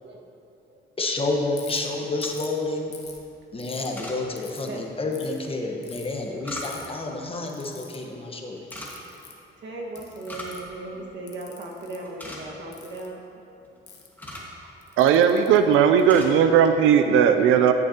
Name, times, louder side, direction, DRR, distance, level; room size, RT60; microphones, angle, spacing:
voice 1, 1.0-2.9 3.5-8.7, left 2 dB, 30° left, 1 dB, 1.2 m, -29 dB
Ratchet pawl, 1.6-1.8 2.2-2.5 2.9-3.9 4.4-4.7 5.1-5.4 5.8-6.1 6.6-6.9 7.5-8.0 8.7-9.4 10.0-10.7 11.3-12.0 12.7-13.1 13.9-14.1 14.8-16.3, left 6 dB, 60° left, 1.2 m, -45 dB
sound 1, 2.0-2.6 3.9-4.2 5.9-7.0 8.6-8.9 10.0-10.6 10.9-11.0 11.5-11.7 12.0-12.7 13.6-14.6 15.3-15.5 15.8-16.3 16.7-16.9, left 1 dB, 10° left, 1.7 m, -40 dB
voice 2, 9.6-13.8 14.3-14.7 15.2-15.3, right 2 dB, 60° right, -2 dB, 1.6 m, -38 dB
voice 3, 15.0-17.7, right 8 dB, 90° right, 8 dB, 0.4 m, -17 dB
14.0 x 6.6 x 2.9 m, 2.7 s
cardioid pair, 90°, 20 cm